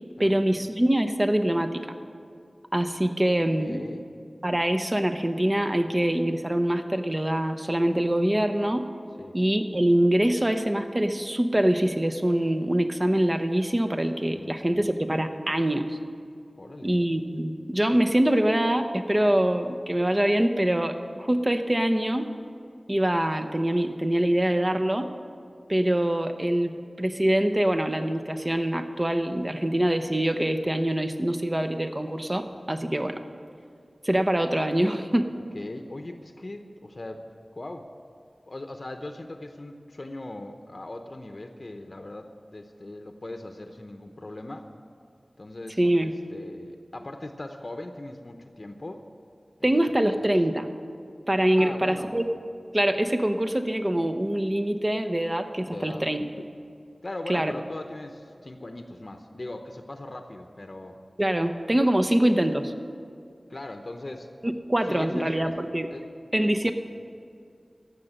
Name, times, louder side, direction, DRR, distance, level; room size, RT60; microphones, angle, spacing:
voice 1, 0.2-1.8 2.7-3.8 4.4-8.8 9.3-16.0 16.8-22.3 22.9-25.1 25.7-33.2 34.0-35.3 45.8-46.2 49.6-50.7 51.3-52.3 52.7-56.5 57.3-57.5 61.2-62.7 64.4-65.9 66.3-66.7, right 1 dB, 30° right, 7 dB, 0.9 m, -24 dB
voice 2, 3.6-4.1 9.2-9.4 14.3-14.9 16.6-17.0 35.5-37.3 37.6-37.9 38.5-44.7 45.4-49.0 49.6-49.8 50.2-50.3 51.6-52.2 55.7-56.0 57.0-61.0 63.5-64.3 64.9-65.6 65.9-66.1, left 2 dB, 55° left, 6 dB, 0.8 m, -39 dB
14.5 x 6.6 x 8.9 m, 2.3 s
wide cardioid pair, 50°, 0 cm